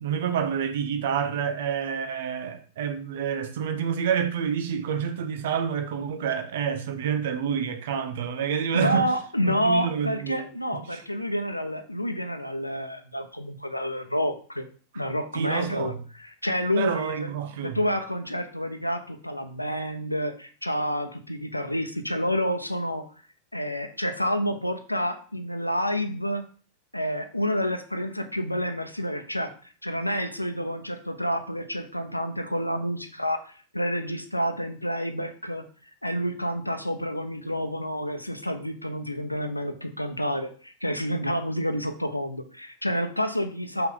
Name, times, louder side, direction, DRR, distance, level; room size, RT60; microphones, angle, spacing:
voice 1, 0.0-9.1 9.5-10.5 10.9-11.0 15.3-16.0 16.8-17.8, right 7 dB, 55° right, 1.1 m, -28 dB
voice 2, 8.7-14.6 14.9-15.9 16.2-17.3 17.6-23.0 23.5-26.4 26.9-29.5 29.8-35.6 36.0-43.9, equal, 85° left, 0.8 m, -29 dB
6.8 x 5.7 x 3.9 m
figure-of-eight pair, 90°, 0 cm